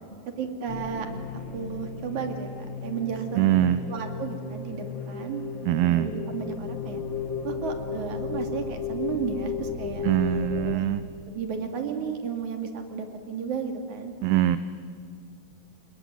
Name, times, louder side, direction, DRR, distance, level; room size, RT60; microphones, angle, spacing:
voice 1, 0.4-1.1 1.5-2.5 2.8-3.5 3.9-7.0 7.4-10.2 10.6-10.9 11.3-14.1, right 6 dB, 50° right, 5 dB, 3.6 m, -33 dB
sound 1, 0.7-10.8, left 5 dB, 45° left, 1.6 m, -34 dB
voice 2, 3.4-3.8 5.7-6.1 10.0-11.0 14.2-14.6, right 13 dB, 75° right, 12 dB, 2.5 m, -22 dB
29.5 x 20.5 x 9.3 m, 2.3 s
omnidirectional pair, 4.9 m